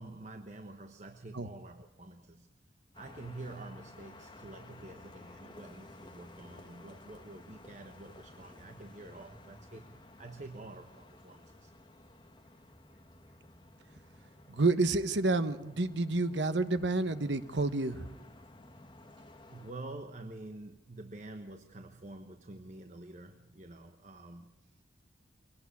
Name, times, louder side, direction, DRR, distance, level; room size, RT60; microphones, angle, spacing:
voice 1, 0.0-2.5 2.9-11.7 19.4-24.5, right 2 dB, 40° right, 1.1 m, -48 dB
sound 1, 2.9-19.7, left 1 dB, 25° left, 1.5 m, -54 dB
voice 2, 14.5-18.1, right 2 dB, 70° right, 1.2 m, -29 dB
23.0 x 17.5 x 8.5 m
head